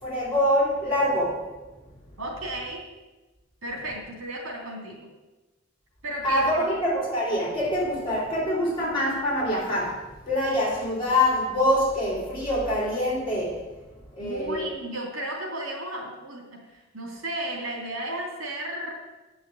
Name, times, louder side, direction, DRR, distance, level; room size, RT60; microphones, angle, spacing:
voice 1, 0.0-1.4 6.2-10.0 10.3-13.6 14.2-14.7, left 1 dB, 25° left, -5 dB, 4.2 m, -25 dB
voice 2, 2.2-2.8 3.6-5.1 6.0-6.8 14.2-18.9, right 1 dB, 85° right, 0 dB, 2.9 m, -34 dB
8.9 x 6.3 x 7.7 m, 1.1 s
head